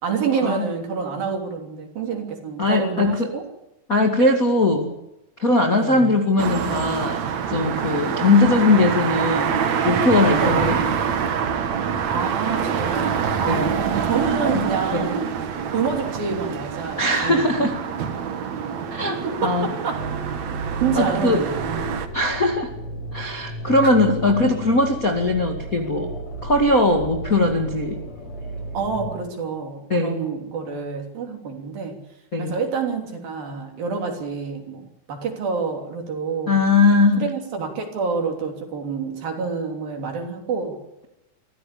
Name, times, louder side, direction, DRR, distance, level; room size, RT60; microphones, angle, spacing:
voice 1, 0.0-3.4 5.7-6.1 10.4-10.8 11.8-13.1 13.4-15.3 15.7-17.7 19.2-20.1 20.8-21.7 24.1-24.4 28.7-32.0 32.4-36.5 37.1-40.8, right 5 dB, 50° right, 3 dB, 4.7 m, -27 dB
voice 2, 2.6-3.3 3.9-4.9 5.4-7.2 7.5-9.6 9.8-10.7 13.5-13.7 14.5-15.1 17.0-17.7 18.9-19.7 20.9-21.4 22.1-22.7 23.1-26.1 26.4-28.0 29.9-30.2 32.3-32.6 36.5-37.2, left 2 dB, 70° left, 2 dB, 0.8 m, -20 dB
sound 1, 6.4-22.1, right 7 dB, 70° right, 1.6 m, -25 dB
sound 2, 20.0-29.1, equal, 35° left, 6.0 m, -34 dB
25.5 x 15.5 x 8.6 m, 0.89 s
omnidirectional pair, 5.8 m